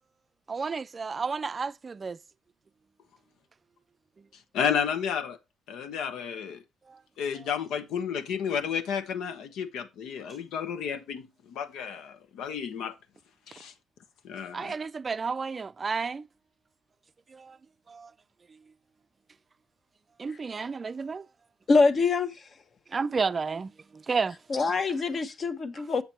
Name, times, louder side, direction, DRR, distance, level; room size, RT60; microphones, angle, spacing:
voice 1, 0.5-2.2 6.9-7.0 7.4-7.5 14.5-16.3 17.3-17.6 17.9-18.1 20.2-21.3 22.9-24.4, right 4 dB, 35° right, 0.4 m, -32 dB
voice 2, 4.5-5.4 5.7-6.6 7.2-12.9 13.5-13.7 14.2-14.7, left 7 dB, 85° left, 1.2 m, -32 dB
voice 3, 21.7-22.4 24.5-26.0, left 4 dB, 45° left, 1.2 m, -24 dB
7.9 x 7.1 x 4.4 m
cardioid pair, 90°, 0 cm